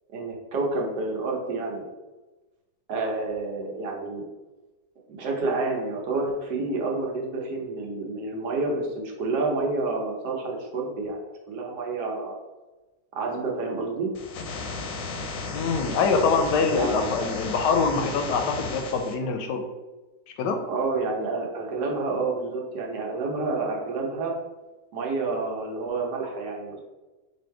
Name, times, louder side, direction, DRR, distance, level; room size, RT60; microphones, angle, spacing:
voice 1, 0.1-1.9 2.9-4.2 5.1-11.2 11.5-12.4 13.1-14.1 16.7-17.3 20.6-24.3 24.9-26.8, right 3 dB, 75° right, -1 dB, 1.5 m, -29 dB
sound 1, 14.1-19.1, left 3 dB, 65° left, 0.9 m, -34 dB
voice 2, 15.5-19.7 20.4-20.6, left 4 dB, 80° left, 5 dB, 1.2 m, -24 dB
4.3 x 2.6 x 4.5 m, 1.1 s
omnidirectional pair, 1.9 m